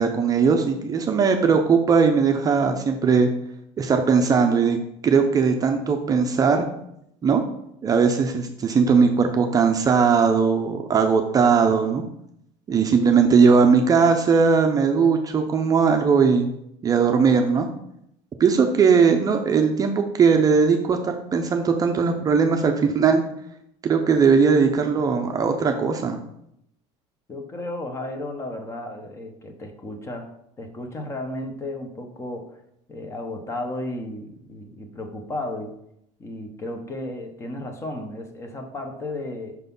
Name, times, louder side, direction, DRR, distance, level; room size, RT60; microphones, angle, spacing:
voice 1, 0.0-3.3 3.8-4.8 5.0-6.7 7.2-7.4 7.8-12.0 12.7-16.5 16.8-17.7 18.4-23.2 23.8-26.2, right 5 dB, 25° right, 4 dB, 0.6 m, -19 dB
voice 2, 27.3-32.6 32.9-35.7 36.2-39.6, left 1 dB, 20° left, 6 dB, 0.8 m, -34 dB
5.7 x 4.0 x 5.4 m, 0.76 s
cardioid pair, 150°, 15 cm